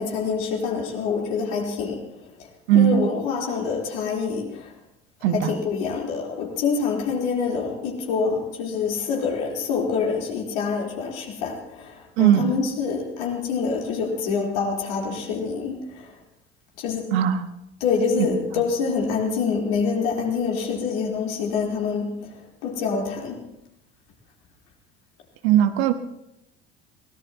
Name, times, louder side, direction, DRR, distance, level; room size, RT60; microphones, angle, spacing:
voice 1, 0.0-4.7 5.3-16.2 16.8-17.1 17.8-23.5, left 5 dB, 65° left, -1 dB, 4.1 m, -26 dB
voice 2, 2.7-3.0 5.2-5.5 12.2-12.6 17.1-17.4 18.2-18.3 25.4-25.9, right 11 dB, 65° right, 9 dB, 1.4 m, -18 dB
23.0 x 18.0 x 3.1 m, 0.82 s
figure-of-eight pair, 60°, 33 cm